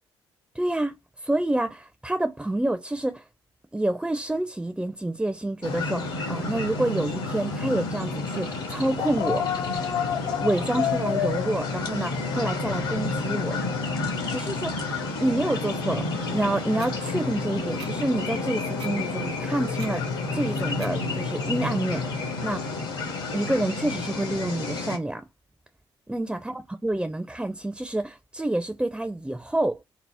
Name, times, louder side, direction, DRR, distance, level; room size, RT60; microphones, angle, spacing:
voice 1, 0.5-0.9 1.2-3.2 3.7-9.5 10.4-13.6 14.3-14.9 15.2-20.0 20.3-22.7 23.3-25.2 26.1-26.4 26.8-29.8, right 1 dB, 5° right, 0.4 m, -28 dB
sound 1, 5.6-25.0, left 3 dB, 75° left, 1.1 m, -30 dB
sound 2, 9.0-14.9, left 10 dB, 55° left, 0.5 m, -32 dB
sound 3, 16.8-16.9 17.8-17.9 18.8-18.9 19.8-19.9 20.8-20.9, right 5 dB, 85° right, 0.5 m, -42 dB
2.8 x 2.0 x 3.3 m
figure-of-eight pair, 45°, 13 cm